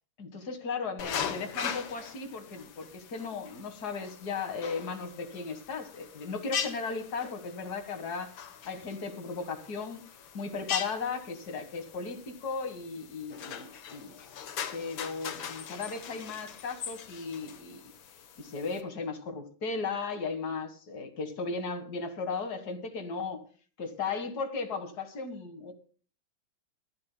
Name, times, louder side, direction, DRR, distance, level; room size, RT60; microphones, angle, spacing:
voice 1, 0.2-8.3 8.6-10.0 10.3-14.2 14.7-17.8 18.4-23.4 23.8-25.7, left 4 dB, 50° left, 2.1 m, -36 dB
sound 1, 1.0-18.8, left 8 dB, 70° left, 1.9 m, -41 dB
24.5 x 11.5 x 2.2 m
omnidirectional pair, 2.3 m